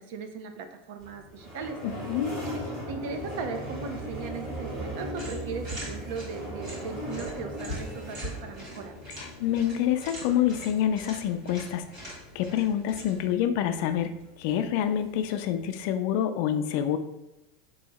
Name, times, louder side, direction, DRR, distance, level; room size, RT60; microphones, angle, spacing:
voice 1, 0.0-1.8 2.4-2.6 2.9-8.9, right 5 dB, 55° right, 6 dB, 0.6 m, -38 dB
sound 1, 1.0-15.9, equal, 20° right, 1.6 m, -39 dB
voice 2, 1.8-2.3 9.1-14.1 14.4-17.0, left 10 dB, 50° left, 9 dB, 0.4 m, -27 dB
sound 2, 5.1-13.3, equal, 35° right, 1.6 m, -42 dB
4.7 x 2.8 x 4.1 m, 0.98 s
supercardioid pair, 165°, 0 cm